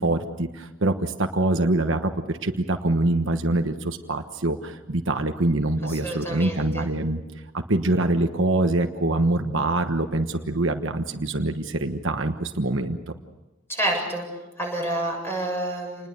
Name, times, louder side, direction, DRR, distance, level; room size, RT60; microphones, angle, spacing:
voice 1, 0.0-7.2 7.5-13.0, right 2 dB, 60° right, 6 dB, 1.3 m, -24 dB
voice 2, 5.9-6.9 13.7-14.2 14.6-16.1, right 1 dB, 10° left, 0 dB, 7.6 m, -28 dB
28.5 x 20.5 x 6.7 m, 1.1 s
head